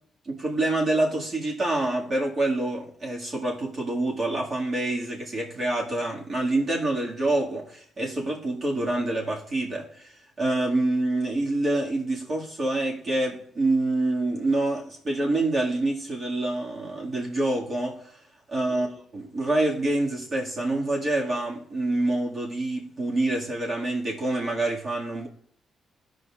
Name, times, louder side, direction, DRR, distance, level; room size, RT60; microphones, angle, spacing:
voice 1, 0.3-18.2 18.5-18.9 19.1-25.3, right 2 dB, 40° right, 2.0 m, -26 dB
14.0 x 5.1 x 2.5 m
cardioid pair, 90°, 0 cm